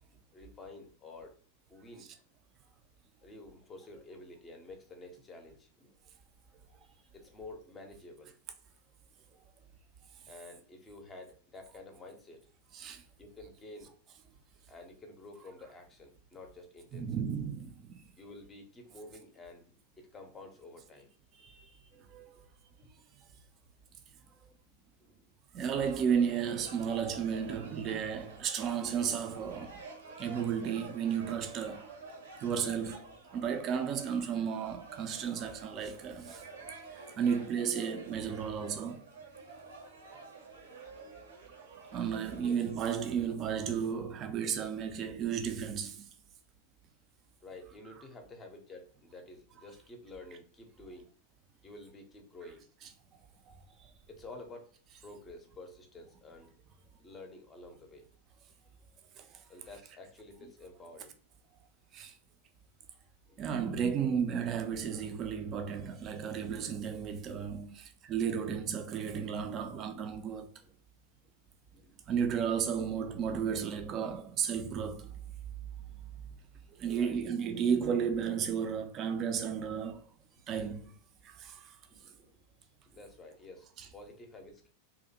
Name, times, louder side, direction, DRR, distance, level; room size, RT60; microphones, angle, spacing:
voice 1, 0.1-1.4 1.7-2.1 3.2-5.9 7.1-8.3 10.3-12.4 13.2-14.0 14.7-17.1 18.2-21.1 21.9-22.4 25.0-25.3 33.3-33.5 36.5-36.7 42.3-42.6 47.4-51.1 51.6-52.6 54.1-54.8 55.0-56.5 57.0-58.1 59.5-61.1 63.3-63.4 65.8-66.0 69.5-69.7 70.6-70.7 71.2-71.3 71.7-72.0 76.7-77.2 80.8-80.9 81.9-82.4 82.9-84.7, left 2 dB, 20° left, 0.5 m, -51 dB
voice 2, 16.9-18.1 21.4-21.7 22.1-22.3 25.5-29.8 30.2-31.9 32.4-36.4 36.9-39.0 41.7-46.1 53.5-53.9 59.2-59.4 61.9-62.2 63.4-70.5 72.1-75.1 76.7-80.1 80.5-80.9 81.2-81.8 83.8-83.9, right 7 dB, 30° right, 0.3 m, -33 dB
sound 1, 25.8-42.9, right 3 dB, 70° right, 0.6 m, -50 dB
2.5 x 2.1 x 2.7 m
figure-of-eight pair, 90°, 0 cm